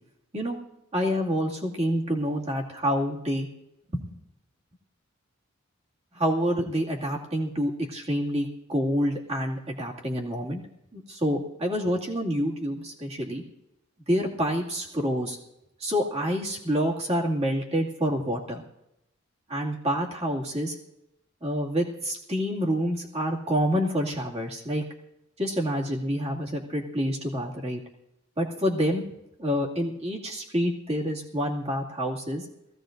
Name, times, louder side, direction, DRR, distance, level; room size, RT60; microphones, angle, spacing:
voice 1, 0.9-3.5 3.9-4.1 6.1-10.6 10.9-13.4 14.1-15.4 15.8-18.6 19.5-20.7 21.4-24.8 25.4-27.8 28.4-29.0 29.4-32.5, equal, 30° right, -2 dB, 2.3 m, -27 dB
21.5 x 16.0 x 2.6 m, 0.86 s
head